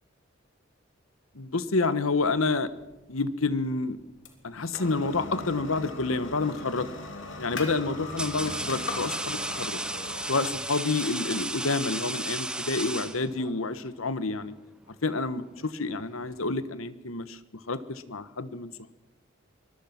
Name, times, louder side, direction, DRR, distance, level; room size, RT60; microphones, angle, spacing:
voice 1, 1.3-2.7 3.1-4.0 4.4-6.9 7.4-9.8 10.3-14.5 15.0-17.4 17.7-18.7, left 3 dB, 85° left, 13 dB, 1.3 m, -29 dB
sound 1, 2.2-13.2, left 2 dB, 65° left, 3.4 m, -40 dB
sound 2, 6.5-6.8 7.6-13.6, right 1 dB, 5° right, 0.8 m, -34 dB
24.0 x 19.5 x 5.9 m, 1.0 s
head